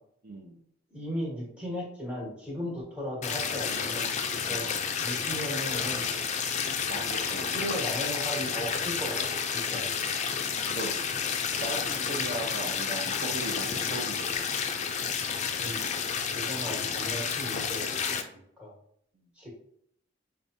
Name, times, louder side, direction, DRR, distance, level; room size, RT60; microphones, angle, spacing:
voice 1, 0.2-0.6 4.5-4.7 6.9-7.5 10.6-10.9 11.5-14.6, right 2 dB, 50° right, -1 dB, 0.6 m, -38 dB
voice 2, 0.9-4.7 5.0-6.0 7.4-10.0 15.6-16.0 16.3-18.2 18.6-18.7 19.4-19.5, equal, 5° right, -5 dB, 1.3 m, -36 dB
sound 1, 3.2-18.2, left 6 dB, 35° left, 0.3 m, -30 dB
4.8 x 2.3 x 2.7 m, 0.70 s
head